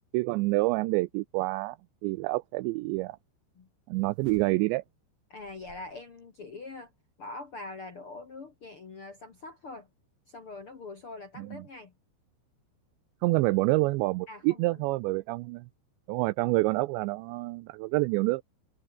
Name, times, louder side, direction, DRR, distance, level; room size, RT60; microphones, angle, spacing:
voice 1, 0.1-1.8 2.0-3.2 3.9-4.8 11.4-11.6 13.2-15.7 16.1-18.4, right 22 dB, 90° right, 2.5 m, -27 dB
sound 1, 4.2-4.9 5.4-6.2 6.5-6.6, right 7 dB, 45° right, 4.9 m, -51 dB
voice 2, 5.3-6.9 7.2-9.9 10.3-11.9 14.3-14.8, left 3 dB, 50° left, 1.6 m, -43 dB
omnidirectional pair, 5.7 m